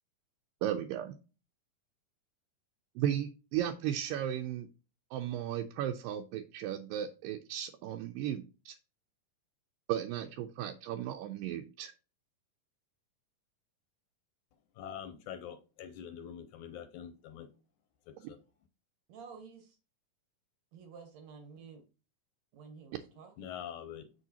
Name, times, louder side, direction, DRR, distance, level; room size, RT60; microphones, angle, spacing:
voice 1, 0.6-1.2 3.0-4.7 5.1-8.8 9.9-11.9, right 10 dB, 85° right, 2.2 m, -35 dB
voice 2, 14.8-17.5 18.1-18.4 23.4-24.1, left 9 dB, 80° left, 1.9 m, -45 dB
voice 3, 19.1-19.8 20.7-21.8 22.5-23.6, right 5 dB, 65° right, 2.0 m, -51 dB
7.3 x 6.2 x 2.9 m
omnidirectional pair, 4.0 m